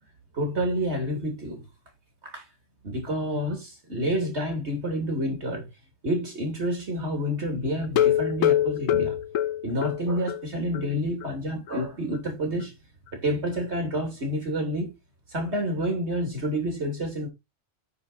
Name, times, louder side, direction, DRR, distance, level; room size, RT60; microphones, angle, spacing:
voice 1, 0.3-1.6 2.3-2.4 2.8-5.6 6.0-9.2 9.6-12.7 13.1-14.9 15.3-17.3, equal, 55° right, 3.2 m, -28 dB
sound 1, 7.8-10.4 10.7-10.8 11.2-11.3 11.7-11.8, left 11 dB, 90° left, 1.1 m, -24 dB
9.9 x 4.6 x 4.1 m
omnidirectional pair, 1.3 m